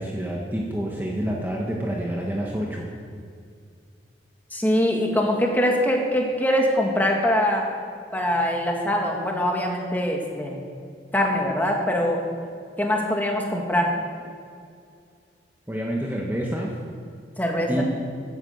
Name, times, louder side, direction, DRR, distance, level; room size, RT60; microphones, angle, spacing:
voice 1, 0.0-2.9 15.7-16.7 17.7-17.8, equal, 10° right, -2 dB, 1.3 m, -28 dB
voice 2, 4.5-7.7 8.1-10.6 11.1-12.3 12.8-14.0 17.4-17.8, equal, 10° left, 0 dB, 2.0 m, -23 dB
14.0 x 10.5 x 8.0 m, 2.3 s
head